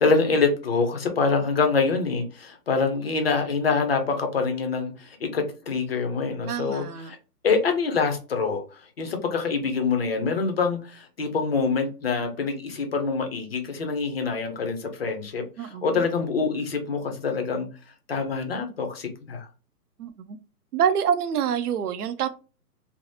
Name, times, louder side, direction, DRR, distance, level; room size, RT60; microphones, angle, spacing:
voice 1, 0.0-7.2 7.4-17.7 18.1-19.5, left 4 dB, 40° left, 5 dB, 0.5 m, -25 dB
voice 2, 6.5-7.1 15.6-16.0 20.0-20.4 20.7-22.3, right 8 dB, 70° right, 10 dB, 0.6 m, -26 dB
3.3 x 2.0 x 2.6 m, 0.34 s
hypercardioid pair, 160°, 49 cm